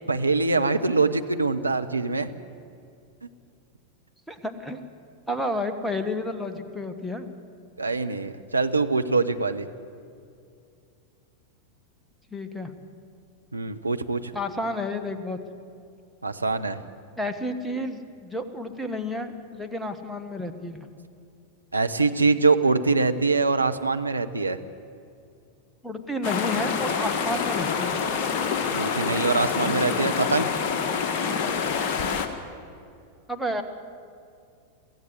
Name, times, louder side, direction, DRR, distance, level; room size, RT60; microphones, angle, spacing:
voice 1, 0.1-2.3 7.8-9.7 13.5-14.3 16.2-16.8 21.7-24.6 28.7-30.5, right 3 dB, 80° right, 7 dB, 0.9 m, -23 dB
voice 2, 4.3-4.8 5.3-7.4 12.3-12.7 14.3-15.4 17.2-20.9 25.8-28.0 33.3-33.6, left 1 dB, ahead, 7 dB, 1.5 m, -31 dB
sound 1, 26.2-32.3, left 6 dB, 40° left, 1.8 m, -26 dB
23.5 x 15.5 x 8.0 m, 2.4 s
figure-of-eight pair, 90°, 0 cm